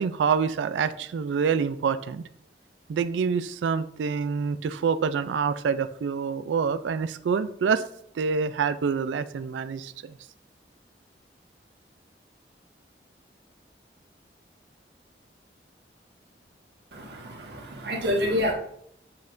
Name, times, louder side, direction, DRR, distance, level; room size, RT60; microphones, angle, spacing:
voice 1, 0.0-2.2 2.9-7.8 8.1-10.2, right 6 dB, 90° right, 13 dB, 0.3 m, -26 dB
voice 2, 16.9-18.5, left 1 dB, 70° right, -1 dB, 1.4 m, -28 dB
7.5 x 5.7 x 2.5 m, 0.70 s
head